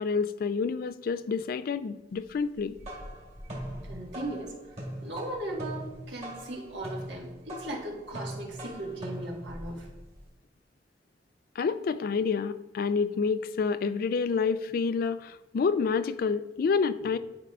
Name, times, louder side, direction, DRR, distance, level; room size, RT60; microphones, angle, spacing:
voice 1, 0.0-2.7 11.6-17.2, left 5 dB, 55° left, 14 dB, 0.3 m, -28 dB
sound 1, 2.5-10.3, equal, 35° right, 1.9 m, -41 dB
voice 2, 3.9-4.6 5.0-9.9, right 1 dB, 75° right, -2 dB, 1.5 m, -37 dB
11.0 x 4.8 x 2.4 m, 1.0 s
head